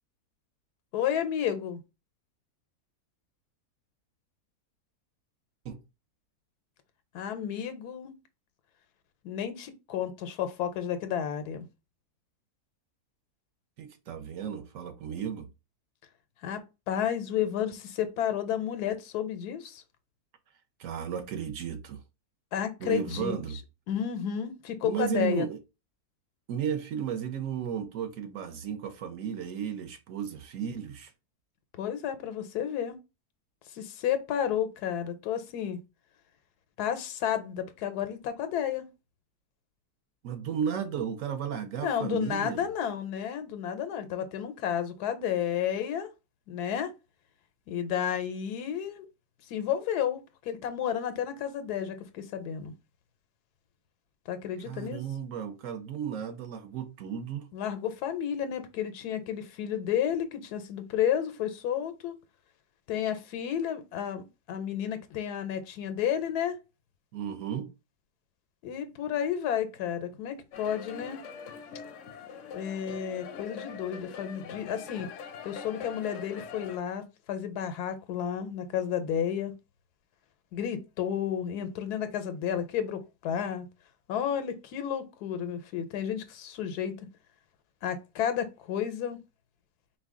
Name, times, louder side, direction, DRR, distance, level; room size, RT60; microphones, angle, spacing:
voice 1, 0.9-1.8 7.1-8.1 9.2-11.7 16.4-19.8 22.5-23.3 23.9-25.5 31.8-33.0 33.7-35.8 36.8-38.9 41.8-46.1 46.5-46.9 47.7-49.1 49.5-52.7 54.3-55.0 57.5-62.1 62.9-66.6 68.6-71.2 72.5-75.1 75.4-79.5 80.5-83.7 84.1-87.0 87.8-89.2, left 9 dB, 90° left, 1.2 m, -31 dB
voice 2, 13.8-15.5 20.8-22.0 22.8-23.6 24.8-25.6 26.5-31.1 40.2-42.7 54.6-57.5 67.1-67.7, right 8 dB, 65° right, 0.9 m, -34 dB
sound 1, 70.5-76.8, left 6 dB, 65° left, 0.8 m, -43 dB
4.6 x 2.2 x 3.6 m
omnidirectional pair, 1.6 m